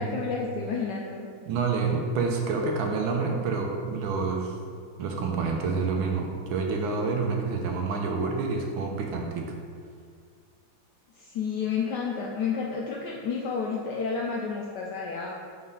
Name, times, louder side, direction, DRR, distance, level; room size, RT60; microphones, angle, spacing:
voice 1, 0.0-1.3 11.1-15.4, left 5 dB, 75° left, -2 dB, 1.0 m, -31 dB
voice 2, 1.5-4.5 5.0-9.4, right 4 dB, 75° right, 2 dB, 1.4 m, -28 dB
4.9 x 4.0 x 5.4 m, 2.1 s
omnidirectional pair, 2.3 m